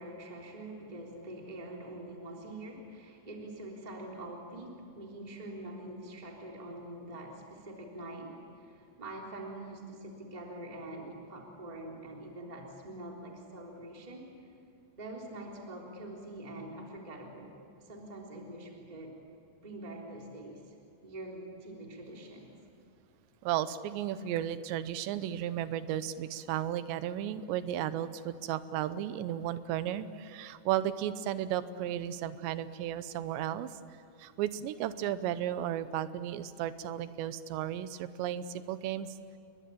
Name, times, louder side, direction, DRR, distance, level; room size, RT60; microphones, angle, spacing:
voice 1, 0.0-14.3 14.9-19.1 19.6-20.7 21.0-22.5, right 1 dB, 10° right, -1 dB, 2.9 m, -45 dB
voice 2, 23.4-33.7 34.2-39.1, right 11 dB, 80° right, 13 dB, 3.1 m, -34 dB
29.0 x 22.5 x 8.6 m, 2.5 s
omnidirectional pair, 5.2 m